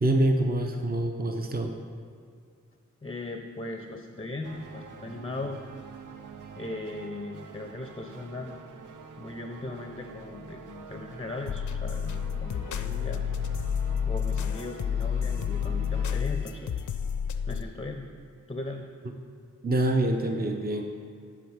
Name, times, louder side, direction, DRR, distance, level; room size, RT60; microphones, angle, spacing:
voice 1, 0.0-1.8 19.6-20.9, right 1 dB, 30° right, 4 dB, 0.6 m, -25 dB
voice 2, 3.0-5.6 6.6-8.5 9.2-13.2 14.0-16.8 17.5-18.1 18.5-18.9, left 2 dB, 20° left, 4 dB, 0.5 m, -38 dB
sound 1, 4.4-16.2, right 5 dB, 80° right, 0.5 m, -46 dB
sound 2, 11.5-17.6, left 7 dB, 70° left, 0.4 m, -30 dB
10.5 x 3.6 x 4.8 m, 2.2 s
cardioid pair, 45°, 31 cm